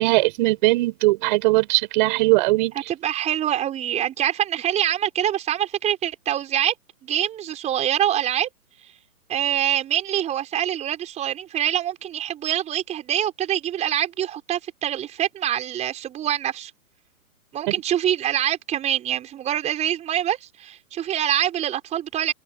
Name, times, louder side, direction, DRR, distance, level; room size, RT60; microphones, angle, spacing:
voice 1, 0.0-2.8, right 21 dB, 30° right, 5.9 m, -19 dB
voice 2, 2.9-6.7 7.0-8.5 9.3-16.7 17.5-22.3, right 11 dB, 15° right, 5.6 m, -25 dB
open air
hypercardioid pair, 145°, 45 cm